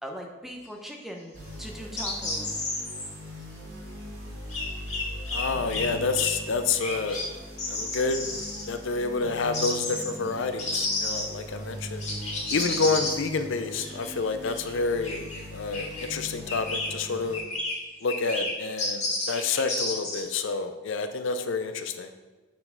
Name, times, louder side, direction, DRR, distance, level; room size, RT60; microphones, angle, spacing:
voice 1, 0.0-1.3 1.6-2.6, equal, ahead, 1 dB, 0.6 m, -40 dB
sound 1, 1.3-17.4, equal, 60° right, 1.9 m, -41 dB
sound 2, 2.0-3.1 4.5-5.4 5.7-5.9 6.1-6.3 6.8-7.3 7.6-8.6 9.5-10.0 10.6-11.3 12.0-13.1 13.8-14.1 14.4-14.7 15.0-15.4 15.7-16.1 16.5-16.9 17.3-17.8 18.1-18.5 18.8-20.2, left 2 dB, 30° left, 2.0 m, -31 dB
voice 2, 5.3-7.2 7.7-8.3 8.7-12.0 12.5-15.2 15.5-17.4 18.0-22.1, left 4 dB, 60° left, 8 dB, 0.5 m, -28 dB
6.7 x 4.3 x 5.6 m, 1.2 s
head